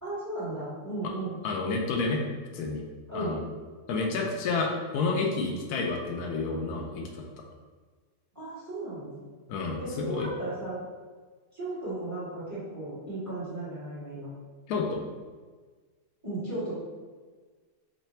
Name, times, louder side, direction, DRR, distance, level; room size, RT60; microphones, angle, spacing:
voice 1, 0.0-1.4 3.1-3.4 8.3-9.2 9.8-10.8 11.5-14.3 16.2-16.7, right 2 dB, 10° right, -9 dB, 1.1 m, -35 dB
voice 2, 1.4-2.2 2.5-2.8 3.1-3.4 3.9-7.2 9.5-10.3 14.7-15.0, left 3 dB, 85° left, 1 dB, 1.1 m, -30 dB
3.2 x 2.2 x 4.2 m, 1.4 s
omnidirectional pair, 1.7 m